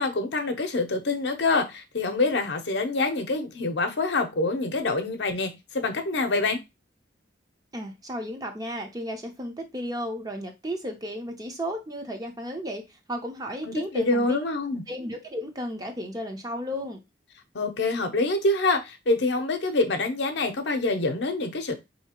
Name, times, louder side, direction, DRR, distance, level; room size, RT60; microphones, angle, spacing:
voice 1, 0.0-6.6 13.6-14.8 17.5-21.7, left 2 dB, 65° left, 0.7 m, -26 dB
voice 2, 7.7-14.5 14.9-17.0, equal, 20° right, 0.6 m, -34 dB
4.0 x 2.8 x 2.8 m
head